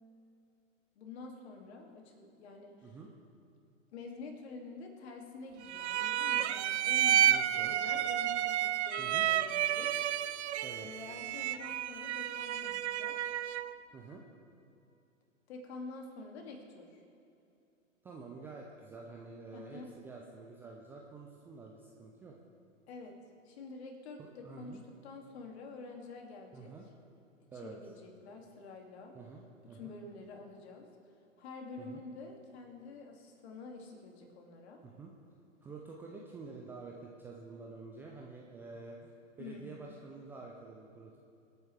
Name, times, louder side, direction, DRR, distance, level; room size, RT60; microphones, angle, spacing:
voice 1, 1.0-3.0 3.9-10.1 10.8-13.3 15.5-17.0 19.5-19.9 22.9-23.2 23.4-26.7 27.6-29.1 29.6-30.9 31.4-34.8 39.4-39.8, left 3 dB, 55° left, 2 dB, 2.3 m, -48 dB
sound 1, 5.7-13.8, right 11 dB, 60° right, 0.5 m, -31 dB
voice 2, 7.3-7.7 9.0-9.3 10.6-10.9 13.9-14.2 18.0-22.4 24.2-24.8 26.5-26.9 27.5-27.8 29.1-29.9 31.8-32.0 34.8-35.1 35.6-39.1 39.4-41.2, right 4 dB, 5° right, -1 dB, 0.3 m, -48 dB
25.0 x 8.8 x 3.3 m, 2.6 s
figure-of-eight pair, 105°, 39 cm